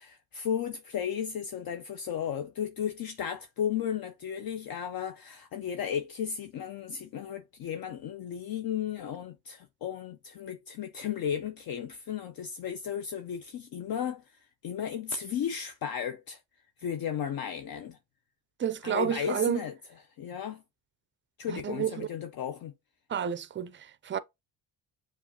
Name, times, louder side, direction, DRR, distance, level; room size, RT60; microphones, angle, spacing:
voice 1, 0.0-16.4 16.8-18.0 18.8-19.7 20.2-20.6 21.4-22.7, left 8 dB, 55° left, 0.6 m, -34 dB
voice 2, 18.6-19.6 21.5-22.1 23.1-24.2, right 8 dB, 30° right, 0.4 m, -30 dB
6.8 x 2.5 x 2.9 m
cardioid pair, 90°, 43 cm